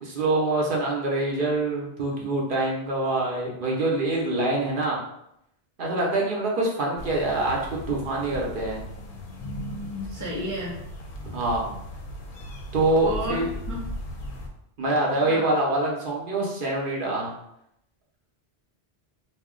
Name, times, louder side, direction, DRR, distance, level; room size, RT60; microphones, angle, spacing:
voice 1, 0.0-5.0 5.8-8.8 11.3-11.7 12.7-13.4 14.8-17.3, right 2 dB, 55° right, -2 dB, 0.8 m, -25 dB
sound 1, 7.0-14.5, left 1 dB, 60° left, 0.6 m, -37 dB
voice 2, 10.1-10.8 13.0-13.8 15.2-15.5, equal, 25° left, -6 dB, 0.4 m, -32 dB
2.5 x 2.1 x 3.6 m, 0.77 s
omnidirectional pair, 1.1 m